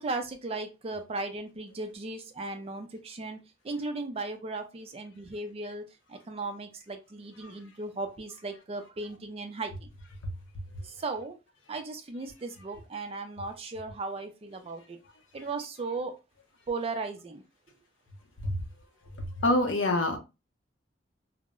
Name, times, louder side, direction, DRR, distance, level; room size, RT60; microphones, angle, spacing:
voice 1, 0.0-3.4 3.6-5.8 6.1-9.7 11.0-11.4 11.7-14.8 15.3-16.1 16.7-17.4, right 3 dB, 30° right, 0.4 m, -36 dB
voice 2, 19.4-20.2, left 1 dB, 75° left, 0.6 m, -25 dB
2.1 x 2.0 x 3.5 m
head